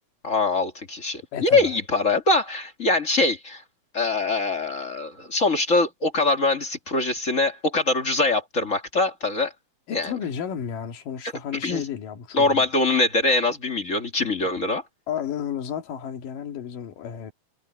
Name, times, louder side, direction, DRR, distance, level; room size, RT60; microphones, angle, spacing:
voice 1, 0.2-3.6 3.9-9.5 9.9-10.1 11.6-11.8 12.3-14.8, left 2 dB, 30° left, 1.8 m, -23 dB
voice 2, 1.3-1.7 9.9-12.7 15.1-17.3, left 8 dB, 85° left, 3.6 m, -32 dB
omnidirectional pair, 3.7 m